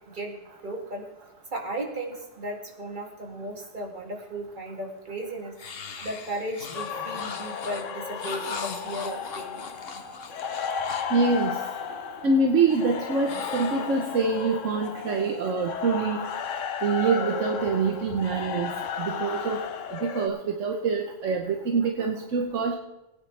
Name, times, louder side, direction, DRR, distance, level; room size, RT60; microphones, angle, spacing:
voice 1, 0.1-1.1 1.5-5.5 6.0-9.7, right 1 dB, 40° right, 1 dB, 2.2 m, -35 dB
sound 1, 5.6-11.2 13.2-14.4, left 5 dB, 55° left, 1.1 m, -40 dB
sound 2, 6.7-20.3, left 6 dB, 85° left, 1.2 m, -34 dB
voice 2, 11.1-11.6 12.2-16.3 16.8-22.7, right 4 dB, 85° right, 3 dB, 1.3 m, -25 dB
20.0 x 9.6 x 3.3 m, 1.0 s
omnidirectional pair, 1.3 m